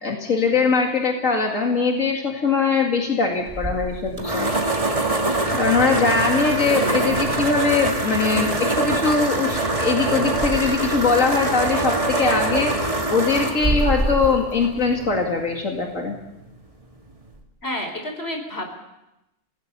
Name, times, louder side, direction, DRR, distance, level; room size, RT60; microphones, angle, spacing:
voice 1, 0.0-4.5 5.5-12.7 13.1-16.1, left 4 dB, 90° left, 1 dB, 2.7 m, -21 dB
sound 1, 3.5-15.3, right 2 dB, 25° right, 2.3 m, -24 dB
voice 2, 17.6-18.6, left 1 dB, 55° left, 4 dB, 4.7 m, -30 dB
27.0 x 19.5 x 6.8 m, 0.92 s
omnidirectional pair, 1.3 m